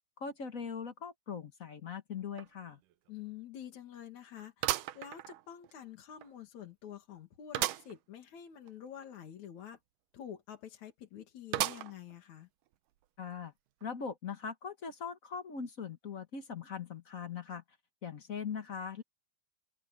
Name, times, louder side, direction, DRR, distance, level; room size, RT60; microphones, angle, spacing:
voice 1, 0.2-2.8 13.2-13.5 13.8-17.6 18.0-19.0, left 6 dB, 50° left, 1.0 m, -41 dB
sound 1, 2.4-2.5 2.9-3.0 4.6-5.7 6.2-6.3 7.5-8.0 8.4-8.5 8.7-8.8 11.5-12.2 12.7-12.8 13.8-13.9, right 14 dB, 90° right, 2.4 m, -34 dB
voice 2, 3.1-9.8 10.1-12.5, left 9 dB, 70° left, 3.4 m, -48 dB
open air
omnidirectional pair, 3.5 m